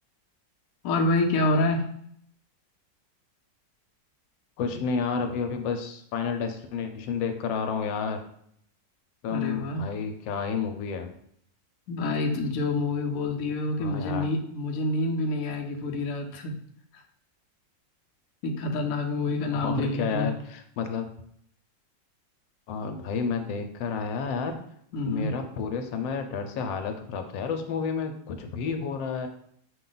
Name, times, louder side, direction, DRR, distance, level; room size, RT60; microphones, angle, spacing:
voice 1, 0.8-1.9 9.3-9.9 11.9-16.5 18.4-20.4 24.9-25.3, left 2 dB, 65° left, 2 dB, 0.9 m, -27 dB
voice 2, 4.6-8.2 9.2-11.1 13.8-14.3 19.5-21.1 22.7-24.6 25.1-29.3, left 5 dB, 85° left, 6 dB, 1.3 m, -30 dB
5.5 x 2.3 x 3.8 m, 0.68 s
omnidirectional pair, 2.0 m